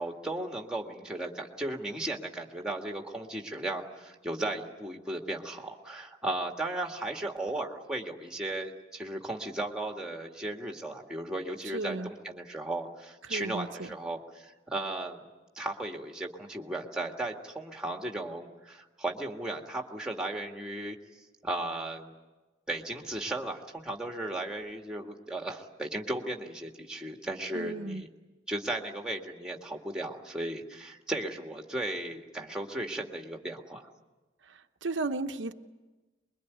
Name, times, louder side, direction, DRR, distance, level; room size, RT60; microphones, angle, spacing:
voice 1, 0.0-15.2 15.6-21.0 21.4-22.1 22.7-28.1 28.5-33.9, right 2 dB, 5° right, 2 dB, 1.9 m, -36 dB
voice 2, 11.7-12.1 13.3-13.9 27.5-28.0 34.8-35.5, right 3 dB, 70° right, 6 dB, 0.9 m, -34 dB
24.0 x 22.0 x 9.4 m, 1.2 s
head